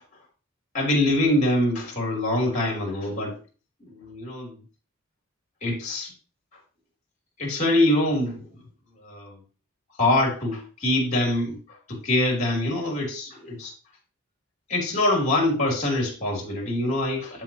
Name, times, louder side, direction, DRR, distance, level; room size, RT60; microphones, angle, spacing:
voice 1, 0.7-3.4 3.8-4.6 5.6-6.1 7.4-8.5 9.0-9.4 10.0-11.6 11.9-13.7 14.7-17.4, left 1 dB, 35° left, 3.5 m, -24 dB
8.2 x 7.5 x 3.0 m
head